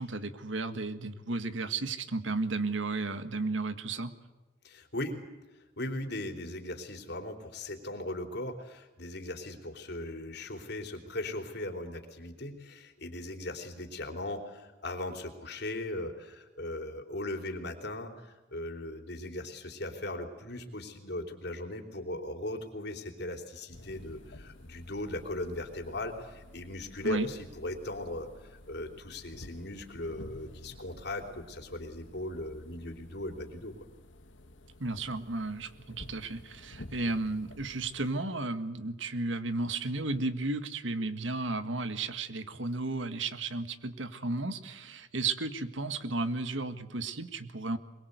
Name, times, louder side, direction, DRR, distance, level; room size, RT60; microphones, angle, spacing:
voice 1, 0.0-4.1 27.0-27.3 34.8-47.8, right 3 dB, 90° right, 10 dB, 1.7 m, -33 dB
voice 2, 4.6-5.2 5.5-33.8, left 1 dB, 60° left, 5 dB, 3.4 m, -38 dB
sound 1, 23.7-38.1, left 1 dB, 85° left, 1.7 m, -51 dB
23.0 x 22.0 x 8.2 m, 1.1 s
head